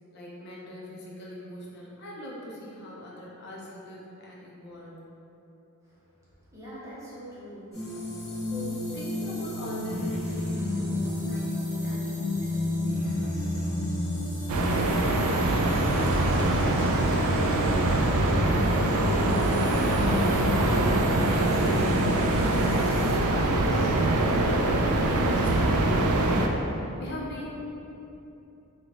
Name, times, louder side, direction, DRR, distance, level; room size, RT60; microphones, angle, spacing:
voice 1, 0.1-5.1 8.5-13.7 24.8-27.5, left 1 dB, 50° left, -5 dB, 0.5 m, -42 dB
voice 2, 6.5-7.7 14.6-24.1, equal, 15° right, -10 dB, 0.7 m, -42 dB
sound 1, 7.7-23.2, left 1 dB, 30° left, 1.3 m, -31 dB
sound 2, 14.5-26.5, right 1 dB, 75° right, 0.3 m, -24 dB
3.7 x 2.2 x 3.3 m, 2.9 s
head